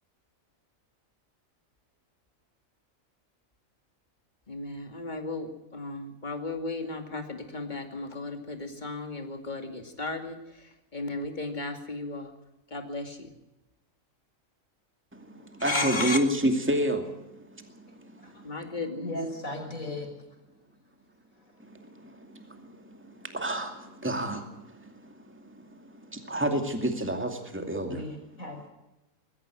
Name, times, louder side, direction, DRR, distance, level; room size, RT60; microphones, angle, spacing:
voice 1, 4.5-12.3 12.7-13.3 15.6-16.2 18.4-19.2, left 2 dB, 35° left, 5 dB, 2.5 m, -35 dB
voice 2, 15.1-18.6 21.6-28.1, right 1 dB, 10° right, 5 dB, 2.4 m, -31 dB
voice 3, 19.0-20.1 27.8-28.7, left 1 dB, 75° left, 2 dB, 6.0 m, -36 dB
21.5 x 15.0 x 9.2 m, 0.94 s
omnidirectional pair, 1.4 m